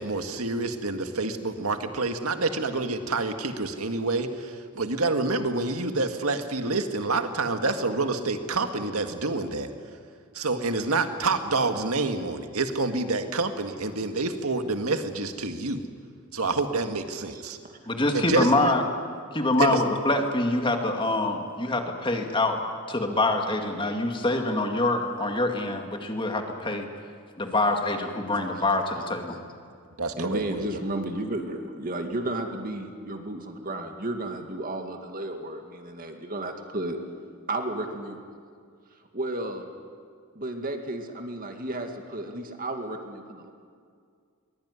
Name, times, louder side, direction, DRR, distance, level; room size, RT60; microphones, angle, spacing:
voice 1, 0.0-9.7 10.3-15.8 16.3-17.6 18.1-18.7 19.6-19.8 30.0-30.6, right 3 dB, 80° right, 7 dB, 1.9 m, -27 dB
voice 2, 17.3-17.8 28.3-28.6 30.2-37.0 37.5-38.1 39.1-39.7 40.3-43.5, right 1 dB, 40° right, 5 dB, 2.2 m, -33 dB
voice 3, 17.9-18.8 19.3-22.6 22.9-26.9 27.4-29.4, left 2 dB, 20° left, 4 dB, 2.2 m, -25 dB
22.5 x 21.0 x 9.8 m, 2.1 s
head